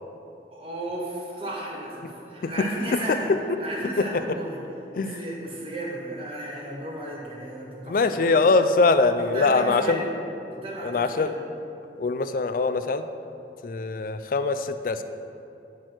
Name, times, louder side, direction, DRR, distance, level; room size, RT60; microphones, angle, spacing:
voice 1, 0.5-3.3 3.6-4.6 5.0-8.4 9.2-10.1 10.6-11.3, right 1 dB, 30° right, -3 dB, 1.5 m, -34 dB
voice 2, 2.4-3.4 4.0-4.2 5.0-5.2 7.9-10.0 10.8-11.3 12.0-13.1 13.6-15.0, left 3 dB, 50° left, 10 dB, 0.4 m, -23 dB
9.3 x 4.4 x 6.0 m, 2.8 s
head